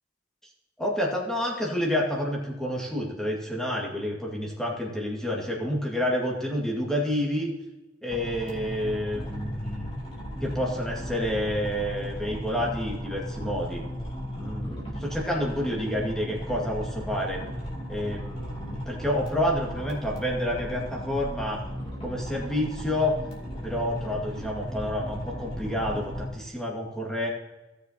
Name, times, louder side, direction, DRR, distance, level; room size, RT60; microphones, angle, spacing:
voice 1, 0.8-7.5 8.0-9.9 10.4-13.8 14.4-17.5 17.9-21.6 22.0-23.2 23.6-27.3, left 1 dB, 5° left, -3 dB, 1.9 m, -29 dB
sound 1, 8.1-26.3, equal, 30° left, 2.6 m, -36 dB
16.5 x 6.8 x 2.9 m, 1.1 s
head